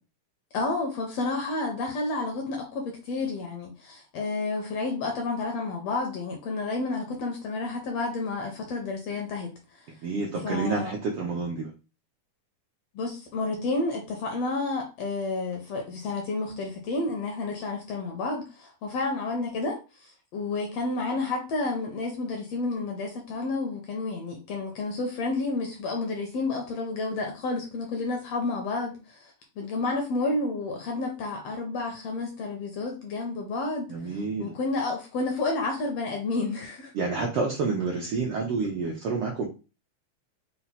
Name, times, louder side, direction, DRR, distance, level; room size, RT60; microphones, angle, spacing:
voice 1, 0.5-9.5 10.4-11.0 12.9-19.8 20.3-33.9 34.4-36.9, left 3 dB, 70° left, 1.6 m, -30 dB
voice 2, 10.0-11.7 33.9-34.5 36.9-39.5, right 4 dB, 75° right, 1.3 m, -29 dB
5.7 x 2.1 x 4.0 m
omnidirectional pair, 3.6 m